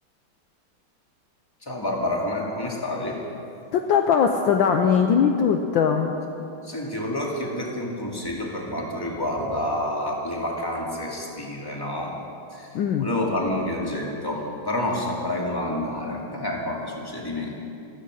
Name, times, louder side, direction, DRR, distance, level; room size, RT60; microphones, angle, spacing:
voice 1, 1.6-3.2 6.6-12.2 12.5-12.7 13.0-17.6, left 1 dB, 10° left, -2 dB, 2.2 m, -28 dB
voice 2, 3.7-6.1 12.7-13.1, left 7 dB, 70° left, 4 dB, 1.4 m, -20 dB
15.0 x 15.0 x 6.5 m, 2.7 s
omnidirectional pair, 2.4 m